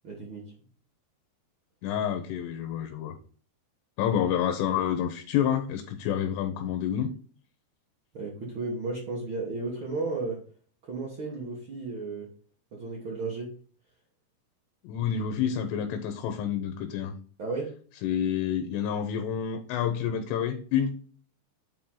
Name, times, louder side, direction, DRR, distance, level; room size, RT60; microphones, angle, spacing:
voice 1, 0.0-0.5 8.1-10.4 10.9-12.3 12.7-13.5 17.4-17.7, right 3 dB, 65° right, -3 dB, 1.2 m, -34 dB
voice 2, 1.8-3.1 4.0-7.1 14.8-17.1 18.0-21.0, left 9 dB, 80° left, 6 dB, 3.0 m, -28 dB
8.3 x 4.3 x 3.8 m, 0.43 s
omnidirectional pair, 4.9 m